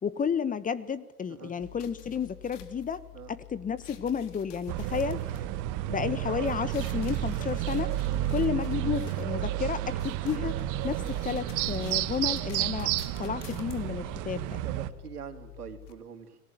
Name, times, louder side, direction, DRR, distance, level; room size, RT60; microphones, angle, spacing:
voice 1, 0.0-3.0 3.3-5.2 5.9-7.9 8.3-10.5 10.8-12.9 13.2-14.6, left 7 dB, 20° left, 15 dB, 1.2 m, -31 dB
sound 1, 1.6-15.9, left 14 dB, 55° left, 3.4 m, -48 dB
sound 2, 4.7-14.9, right 15 dB, 40° right, 1.7 m, -31 dB
voice 2, 14.6-16.4, right 8 dB, 80° right, 7 dB, 3.5 m, -44 dB
29.5 x 20.5 x 9.2 m, 0.92 s
hypercardioid pair, 100°, 45 cm